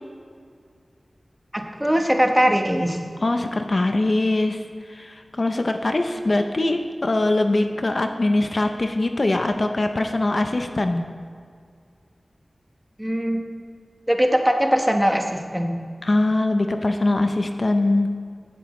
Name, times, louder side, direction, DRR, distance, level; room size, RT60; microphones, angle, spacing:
voice 1, 1.5-3.0 13.0-13.4 14.1-15.7, equal, 10° right, 3 dB, 1.2 m, -21 dB
voice 2, 3.2-11.1 16.0-18.1, left 2 dB, 50° left, 6 dB, 0.6 m, -22 dB
16.0 x 7.9 x 3.2 m, 2.2 s
wide cardioid pair, 50°, 0 cm